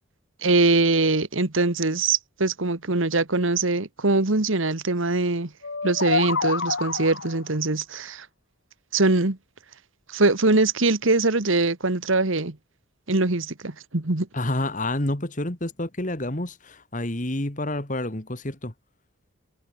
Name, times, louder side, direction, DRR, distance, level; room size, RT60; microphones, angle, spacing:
voice 1, 0.4-5.5 5.8-8.3 8.9-9.4 10.1-12.6 13.1-14.3, right 3 dB, 70° right, 1.7 m, -22 dB
sound 1, 5.6-7.5, left 4 dB, 60° left, 1.2 m, -27 dB
voice 2, 14.3-18.7, left 1 dB, 35° left, 2.0 m, -29 dB
head